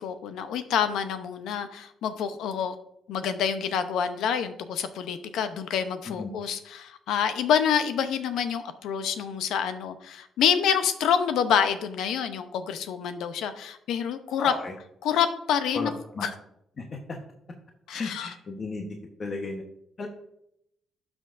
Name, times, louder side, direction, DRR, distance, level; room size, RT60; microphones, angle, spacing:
voice 1, 0.0-2.8 3.1-14.5 15.0-15.9 16.2-16.3 17.9-18.3, left 8 dB, 85° left, 9 dB, 0.7 m, -27 dB
voice 2, 14.4-14.7 15.7-16.3 16.8-16.9 17.9-18.9 19.2-19.6 20.0-20.1, left 3 dB, 40° left, 2 dB, 1.0 m, -34 dB
12.0 x 6.1 x 2.6 m, 0.75 s
cardioid pair, 90°, 0 cm